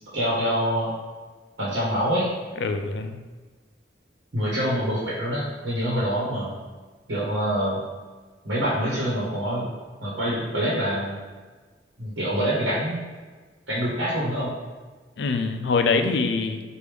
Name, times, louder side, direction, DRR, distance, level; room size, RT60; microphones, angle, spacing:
voice 1, 0.1-0.9 1.6-2.3 4.3-6.5 7.1-7.8 8.4-9.7 10.0-11.1 12.0-13.0 13.7-14.5, equal, 85° right, -7 dB, 1.2 m, -25 dB
voice 2, 2.6-3.2 15.2-16.6, left 4 dB, 70° left, 7 dB, 0.4 m, -24 dB
4.8 x 2.5 x 3.4 m, 1.4 s
head